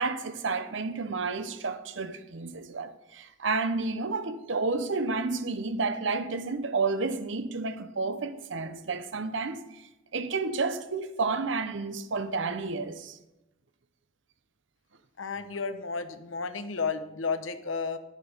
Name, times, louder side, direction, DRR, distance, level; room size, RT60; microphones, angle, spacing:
voice 1, 0.0-9.8 10.1-13.2, right 3 dB, 75° right, 0.8 m, -31 dB
voice 2, 15.2-18.0, left 4 dB, 90° left, 0.9 m, -32 dB
11.5 x 7.4 x 5.3 m
head